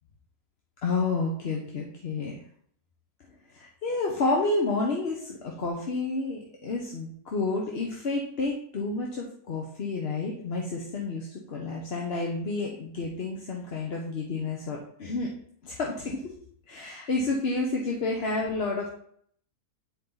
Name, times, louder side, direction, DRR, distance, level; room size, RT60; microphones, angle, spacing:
voice 1, 0.8-2.4 3.5-15.3 15.6-16.2 16.7-18.9, left 3 dB, 45° left, -2 dB, 1.0 m, -30 dB
9.7 x 4.1 x 4.0 m, 0.64 s
omnidirectional pair, 1.7 m